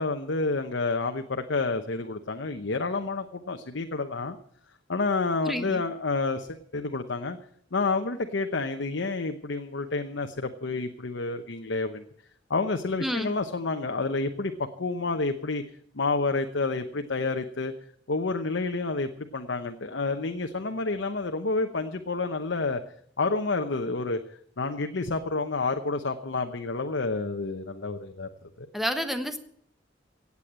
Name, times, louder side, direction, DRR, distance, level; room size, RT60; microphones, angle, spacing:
voice 1, 0.0-4.4 4.9-7.4 7.7-12.0 12.5-14.5 14.8-15.6 15.9-17.7 18.1-22.8 23.2-24.2 24.6-28.7, left 3 dB, 75° left, 6 dB, 0.9 m, -29 dB
voice 2, 5.4-5.8 13.0-13.3 28.7-29.4, equal, ahead, 7 dB, 1.2 m, -29 dB
16.5 x 8.5 x 7.5 m, 0.64 s
head